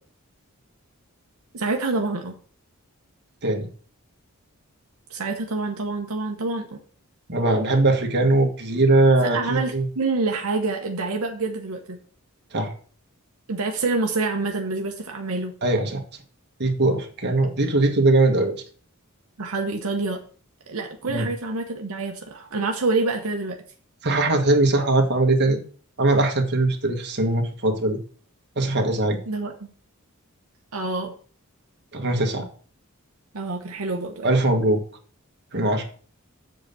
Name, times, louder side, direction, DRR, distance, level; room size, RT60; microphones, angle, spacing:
voice 1, 1.5-2.3 5.1-6.8 9.2-12.0 13.5-15.6 19.4-20.2 20.7-23.6 29.3-29.5 30.7-31.1 33.3-34.3, right 3 dB, 80° right, 3 dB, 1.0 m, -27 dB
voice 2, 7.3-9.8 12.5-12.7 15.6-16.0 16.6-18.6 21.1-21.3 24.0-25.6 26.0-28.0 28.5-29.2 31.9-32.5 34.2-34.8 35.5-35.8, right 2 dB, 55° right, 3 dB, 1.6 m, -20 dB
7.7 x 4.0 x 6.8 m, 0.43 s
head